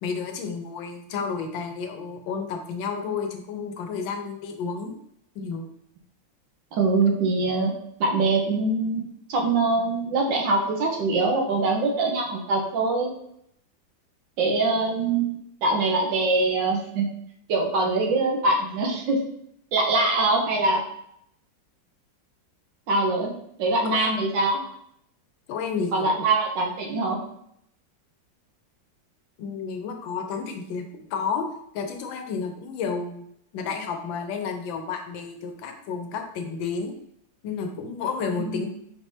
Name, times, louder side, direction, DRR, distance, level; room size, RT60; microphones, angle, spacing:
voice 1, 0.0-5.0 5.3-5.7 23.8-24.1 25.5-26.2 29.4-30.8 31.1-31.5 31.7-33.2 33.5-36.9 37.4-38.7, left 5 dB, 85° left, 5 dB, 1.4 m, -31 dB
voice 2, 6.7-7.7 8.0-9.0 9.3-13.1 14.4-15.3 15.6-17.1 17.5-19.2 19.7-20.8 22.9-23.3 23.6-24.6 25.9-27.2 38.4-38.7, right 3 dB, 75° right, 0 dB, 1.5 m, -23 dB
4.5 x 3.4 x 2.7 m, 0.74 s
omnidirectional pair, 2.0 m